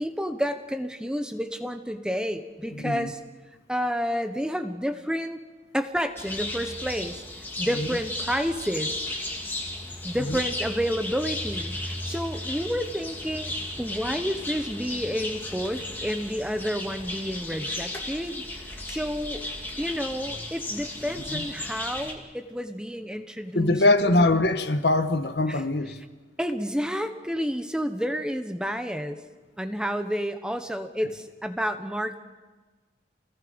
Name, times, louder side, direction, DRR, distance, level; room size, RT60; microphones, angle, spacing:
voice 1, 0.0-3.2 3.7-5.4 5.7-7.2 7.6-9.0 10.0-13.5 13.8-19.4 19.8-24.4 25.5-25.6 26.4-29.2 29.6-32.2, equal, 5° right, 1.0 m, -30 dB
voice 2, 2.7-3.1 7.8-7.9 10.2-10.4 21.3-21.5 23.5-26.0, left 2 dB, 70° left, 1.3 m, -23 dB
sound 1, 6.2-22.1, left 1 dB, 10° left, 2.6 m, -35 dB
29.0 x 19.5 x 5.3 m
head